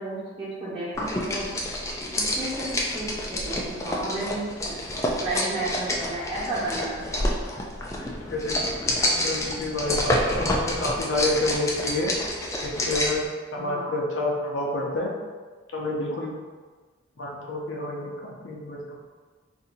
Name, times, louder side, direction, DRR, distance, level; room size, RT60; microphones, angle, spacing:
voice 1, 0.0-1.6 2.1-4.8 5.2-7.2 13.5-14.0, right 2 dB, 30° right, -10 dB, 1.2 m, -33 dB
sound 1, 0.9-13.3, left 1 dB, 15° left, 0.3 m, -28 dB
voice 2, 8.0-8.6 9.0-12.1 12.6-13.3 13.5-15.1 15.7-16.3 17.2-18.8, left 2 dB, 75° left, -2 dB, 0.6 m, -29 dB
2.7 x 2.6 x 3.9 m, 1.4 s
head